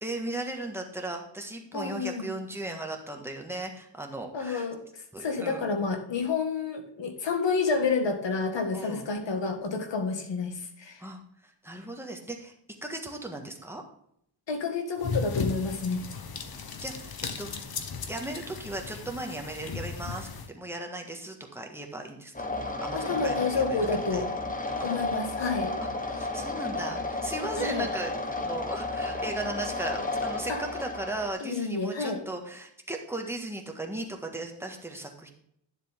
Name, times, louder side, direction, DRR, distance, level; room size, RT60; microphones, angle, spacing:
voice 1, 0.0-4.7 5.1-5.7 8.7-9.1 11.0-12.5 12.8-13.8 16.8-17.6 18.1-24.2 24.9-25.0 25.8-35.3, right 2 dB, 5° right, 2 dB, 1.6 m, -37 dB
voice 2, 1.7-2.3 4.3-11.0 14.5-16.0 22.9-24.3 24.8-25.7 27.6-27.9 30.5-30.6 31.4-32.2, left 4 dB, 80° left, 6 dB, 1.8 m, -29 dB
sound 1, 15.0-20.5, left 4 dB, 55° left, 1.1 m, -36 dB
sound 2, 22.4-31.3, left 2 dB, 20° left, 1.2 m, -32 dB
10.5 x 7.3 x 3.6 m, 0.71 s
wide cardioid pair, 120°, 43 cm